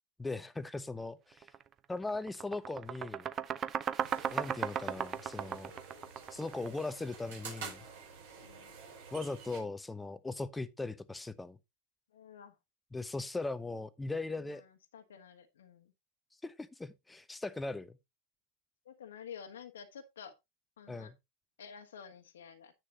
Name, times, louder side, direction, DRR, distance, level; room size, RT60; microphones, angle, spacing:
voice 1, 0.2-1.5 1.9-3.3 4.3-5.7 6.3-7.9 9.1-11.6 12.9-14.6 16.4-18.0 20.9-21.1, left 3 dB, 10° left, 0.7 m, -39 dB
sound 1, 1.4-1.6 2.0-6.9, right 8 dB, 25° right, 0.6 m, -36 dB
sound 2, 4.0-9.6, right 5 dB, 55° right, 5.0 m, -49 dB
voice 2, 8.4-8.7 12.1-12.6 14.4-15.9 18.8-20.3 20.8-21.1 21.6-22.7, left 7 dB, 60° left, 1.3 m, -50 dB
9.9 x 9.2 x 2.8 m
figure-of-eight pair, 90°, 0 cm